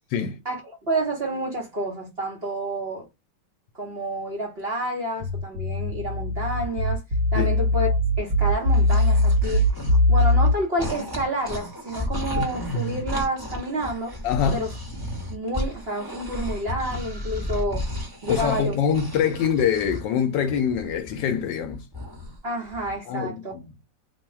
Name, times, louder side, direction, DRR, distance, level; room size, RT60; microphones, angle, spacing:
voice 1, 0.4-3.0 3.7-7.0 7.3-9.7 10.1-14.1 14.5-14.7 15.3-17.8 18.2-18.8 19.2-19.3 22.4-23.5, right 1 dB, 40° right, 1.0 m, -29 dB
sound 1, 5.2-10.5, left 1 dB, 60° right, 1.2 m, -21 dB
sound 2, 8.5-10.5 10.8-20.0 20.3-22.4 22.7-23.0, left 1 dB, 15° right, 1.1 m, -33 dB
voice 2, 14.2-14.6 18.3-21.8 23.1-23.6, left 7 dB, 75° left, 1.2 m, -24 dB
3.1 x 2.3 x 4.2 m
omnidirectional pair, 2.0 m